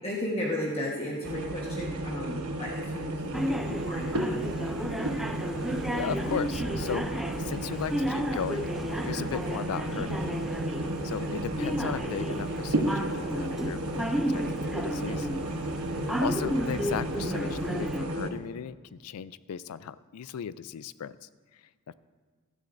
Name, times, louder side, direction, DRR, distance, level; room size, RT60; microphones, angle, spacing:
voice 1, 0.0-4.8 11.2-11.4 16.0-16.2, left 1 dB, 30° left, -3 dB, 1.3 m, -35 dB
sound 1, 1.2-18.3, right 1 dB, 85° right, 1.0 m, -33 dB
sound 2, 3.3-18.0, equal, ahead, 0.4 m, -33 dB
voice 2, 5.4-8.7 9.0-10.5 11.0-15.3 16.2-21.6 21.9-22.0, left 7 dB, 90° left, 17 dB, 0.4 m, -37 dB
15.5 x 12.5 x 2.6 m, 1.4 s
head